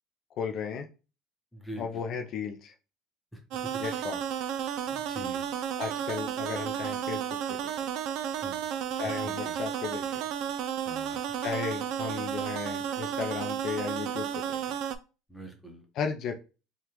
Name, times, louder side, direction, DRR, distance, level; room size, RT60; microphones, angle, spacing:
voice 1, 0.4-0.9 1.8-2.7 3.8-4.2 5.8-7.2 7.5-7.7 9.0-10.0 11.4-14.6 15.9-16.3, left 6 dB, 55° left, 4 dB, 0.4 m, -34 dB
voice 2, 1.5-2.2 3.3-3.4 4.9-5.5 8.4-8.6 9.2-9.6 10.9-11.2 15.3-15.8, equal, 5° left, 2 dB, 0.9 m, -43 dB
sound 1, 3.5-15.0, right 9 dB, 65° right, 0.3 m, -33 dB
3.4 x 2.3 x 2.9 m, 0.32 s
supercardioid pair, 115°, 0 cm